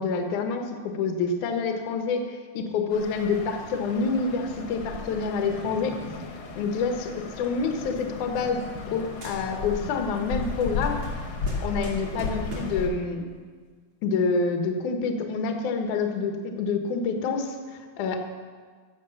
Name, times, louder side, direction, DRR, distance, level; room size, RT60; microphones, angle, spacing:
voice 1, 0.0-6.0 6.6-8.6 8.9-11.0 11.6-13.2 14.0-18.2, left 4 dB, 65° left, 4 dB, 2.2 m, -27 dB
sound 1, 2.9-12.9, left 4 dB, 85° left, 1.1 m, -35 dB
sound 2, 7.6-8.9 9.2-9.9 10.2-12.9, equal, 40° right, 2.6 m, -44 dB
14.5 x 7.8 x 7.0 m, 1.5 s
omnidirectional pair, 4.8 m